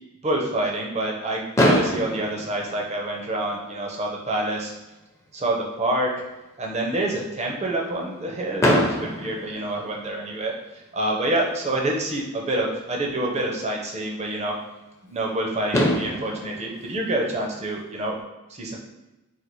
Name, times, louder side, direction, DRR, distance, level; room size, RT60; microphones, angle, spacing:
voice 1, 0.2-4.7 5.3-6.1 6.6-10.5 10.9-14.5 15.1-18.1 18.5-18.8, right 1 dB, 30° right, 0 dB, 0.6 m, -27 dB
Fireworks, 1.6-3.6 4.4-4.5 4.7-4.9 5.2-5.3 8.6-10.4 12.1-12.2 15.3-15.4 15.7-18.0, equal, 15° left, 0.6 m, -25 dB
3.9 x 2.4 x 4.5 m, 1.0 s
head